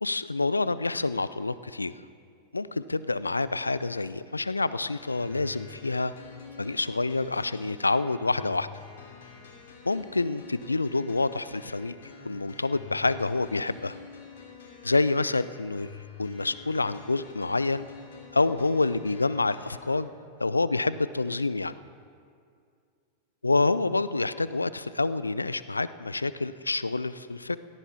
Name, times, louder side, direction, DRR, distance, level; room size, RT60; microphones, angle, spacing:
voice 1, 0.0-1.9 2.5-6.1 6.6-8.7 9.9-11.9 12.2-14.0 14.8-15.9 16.2-17.9 18.3-20.1 20.4-21.7 23.4-27.6, left 3 dB, 80° left, 16 dB, 0.4 m, -27 dB
sound 1, 5.0-20.0, left 6 dB, 65° left, 2.9 m, -48 dB
18.0 x 14.0 x 4.3 m, 2.3 s
figure-of-eight pair, 90°, 0 cm